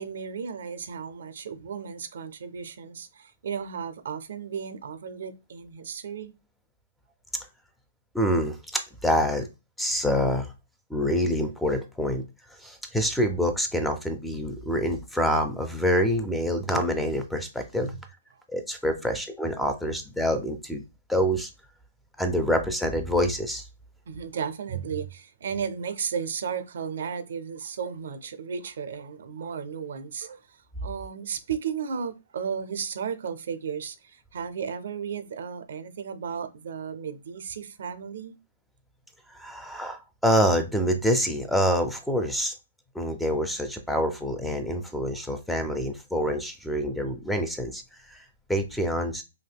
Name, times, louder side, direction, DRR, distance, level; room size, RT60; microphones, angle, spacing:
voice 1, 0.0-6.3 17.8-17.9 19.0-19.2 24.1-38.4, right 7 dB, 65° right, 0.5 m, -34 dB
voice 2, 8.1-9.5 9.8-10.5 10.9-12.2 12.6-17.9 18.5-20.8 21.1-21.5 22.2-23.6 39.3-42.5 42.9-47.8 48.1-48.2 48.5-49.2, equal, ahead, 0.4 m, -26 dB
3.4 x 2.7 x 2.2 m
hypercardioid pair, 155°, 0 cm